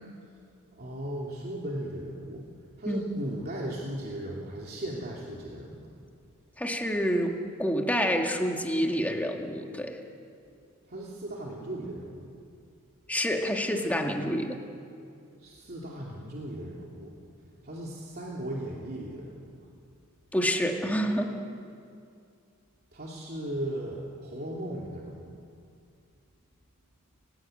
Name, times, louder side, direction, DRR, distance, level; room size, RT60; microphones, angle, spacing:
voice 1, 0.8-2.4 2.8-5.9 10.9-12.3 15.4-17.1 17.6-19.5 22.9-25.4, right 1 dB, 45° right, -3 dB, 2.8 m, -37 dB
voice 2, 6.6-10.0 13.1-14.6 20.3-21.3, equal, 5° left, 2 dB, 2.0 m, -28 dB
29.5 x 17.0 x 8.9 m, 2.4 s
head